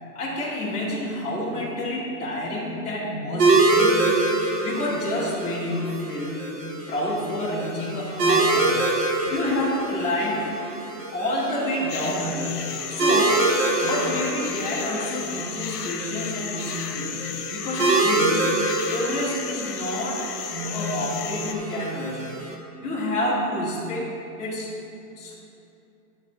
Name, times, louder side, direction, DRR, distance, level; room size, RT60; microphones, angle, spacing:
voice 1, 0.1-4.1 4.6-6.6 6.9-8.8 9.2-10.4 11.1-13.4 13.8-17.3 17.5-18.5 18.9-22.2 22.8-24.1 24.4-24.7 25.2-25.4, left 1 dB, 15° left, -9 dB, 2.0 m, -28 dB
sound 1, 3.4-22.5, right 2 dB, 30° right, 1.0 m, -26 dB
sound 2, 11.9-21.5, left 8 dB, 85° left, 1.1 m, -34 dB
10.5 x 3.9 x 7.4 m, 2.7 s
hypercardioid pair, 165°, 47 cm